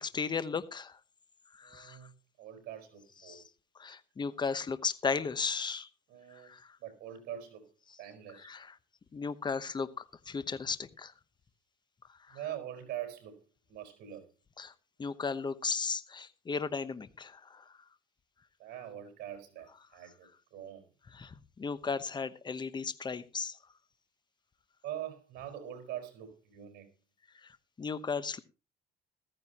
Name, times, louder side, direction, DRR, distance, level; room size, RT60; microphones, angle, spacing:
voice 1, 0.0-1.0 1.6-2.0 3.3-3.4 3.8-5.9 6.4-6.7 8.4-8.7 9.1-11.1 12.3-12.4 14.6-14.7 15.0-17.7 21.1-23.6 27.4-27.5 27.8-28.4, left 5 dB, 25° left, 0.9 m, -35 dB
voice 2, 1.6-3.4 6.1-7.7 8.0-8.5 12.3-13.4 13.7-14.3 18.6-20.9 24.8-26.9, right 11 dB, 75° right, 4.6 m, -44 dB
14.5 x 14.5 x 2.9 m
cardioid pair, 110°, 17 cm